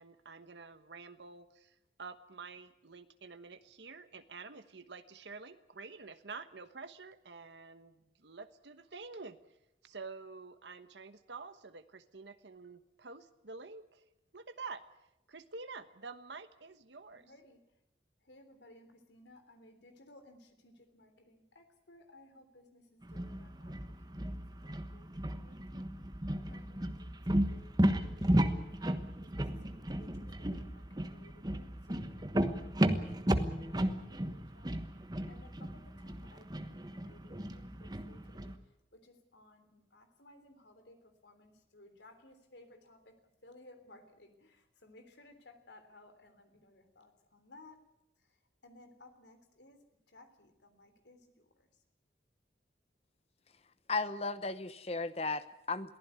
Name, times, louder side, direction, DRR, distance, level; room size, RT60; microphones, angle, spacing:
voice 1, 0.0-9.4 9.8-14.0 14.3-14.8 15.3-17.3, right 4 dB, 80° right, 9 dB, 1.2 m, -48 dB
voice 2, 17.1-17.6 18.2-23.8 24.0-25.9 26.4-34.8 35.2-38.5 38.9-43.2 43.4-47.8 48.6-49.8 50.1-51.7, left 2 dB, 80° left, 8 dB, 3.4 m, -60 dB
sound 1, 23.0-38.5, right 1 dB, 20° right, 1.2 m, -34 dB
voice 3, 53.9-56.0, left 3 dB, 35° left, 13 dB, 1.0 m, -35 dB
22.5 x 15.5 x 9.5 m, 0.86 s
head